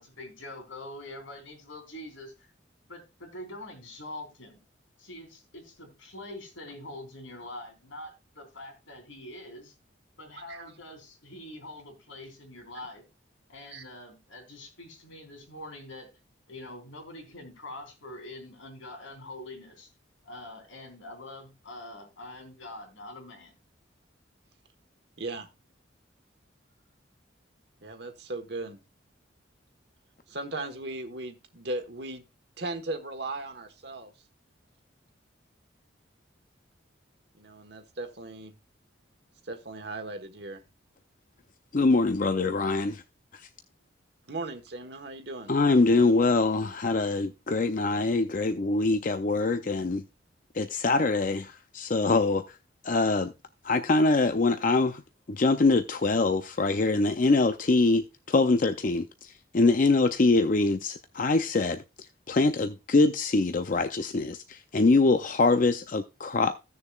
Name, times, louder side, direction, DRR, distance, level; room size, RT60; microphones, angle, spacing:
voice 1, 0.0-2.5 2.9-4.6 5.0-9.7 10.2-13.0 13.5-16.1 16.5-19.9 20.2-23.6, left 1 dB, 90° left, 3.3 m, -44 dB
voice 2, 25.2-25.5 27.8-28.8 30.3-32.2 32.6-34.1 37.4-38.6 39.4-40.6 44.3-45.5, right 2 dB, 55° right, 1.3 m, -37 dB
voice 3, 41.7-43.0 45.5-50.0 50.5-52.4 52.8-53.3 53.6-55.0 55.3-61.8 62.3-66.5, left 3 dB, 40° left, 0.5 m, -24 dB
16.0 x 6.8 x 2.3 m
head